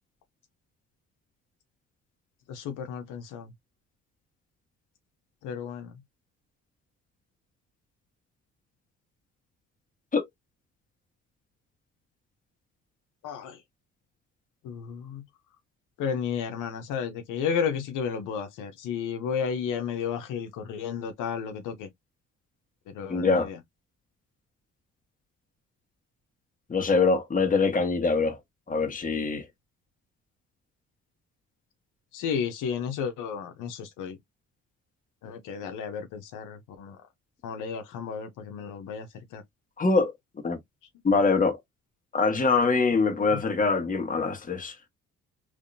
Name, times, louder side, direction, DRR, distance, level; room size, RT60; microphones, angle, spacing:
voice 1, 2.5-3.5 5.4-6.0 13.2-13.6 14.6-15.2 16.0-21.9 22.9-23.6 32.1-34.2 35.2-37.0 37.4-39.4 43.3-43.4, left 7 dB, 90° left, 0.9 m, -33 dB
voice 2, 23.1-23.5 26.7-28.4 28.7-29.4 39.8-40.1 40.4-40.6 41.0-41.6 42.1-44.7, left 4 dB, 25° left, 1.4 m, -24 dB
3.5 x 3.3 x 2.6 m
cardioid pair, 90°, 30 cm